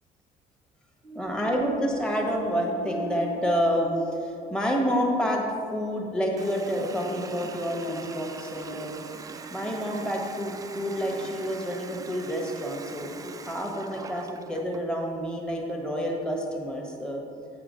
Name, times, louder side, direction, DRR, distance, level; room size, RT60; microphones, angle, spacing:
voice 1, 1.0-5.4 5.7-13.1 13.5-17.2, equal, 5° left, -1 dB, 1.2 m, -28 dB
Water tap faucet, 6.4-14.9, right 5 dB, 20° right, 0.3 m, -42 dB
7.8 x 5.0 x 5.1 m, 2.6 s
cardioid pair, 110°, 17 cm